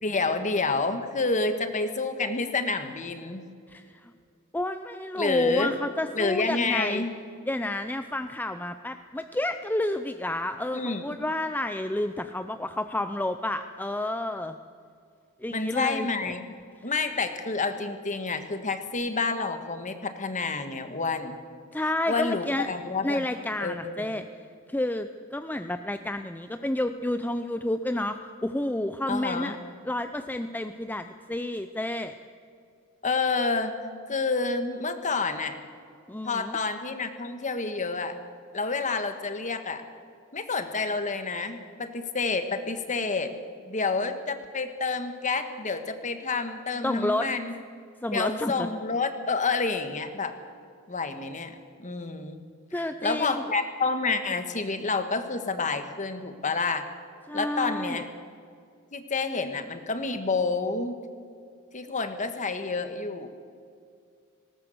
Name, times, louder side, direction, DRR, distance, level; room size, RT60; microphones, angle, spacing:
voice 1, 0.0-3.5 5.2-5.8 6.1-7.1 10.7-11.0 15.5-16.4 16.8-21.4 22.1-23.2 23.6-24.2 29.1-29.6 33.0-33.7 34.1-35.6 36.2-38.2 38.5-39.8 40.3-43.3 43.7-47.5 48.1-50.3 50.9-52.4 52.8-56.8 57.3-58.1 58.9-61.0 61.7-63.3, left 4 dB, 35° left, 8 dB, 1.6 m, -29 dB
voice 2, 3.7-4.1 4.5-7.0 7.5-14.6 15.4-16.3 16.8-16.9 21.7-22.7 23.0-24.3 24.7-29.6 29.8-32.1 36.1-36.6 46.8-47.3 48.0-48.7 52.7-53.4 57.3-58.0, left 1 dB, 10° left, 8 dB, 0.5 m, -30 dB
19.0 x 18.0 x 8.0 m, 2.3 s
head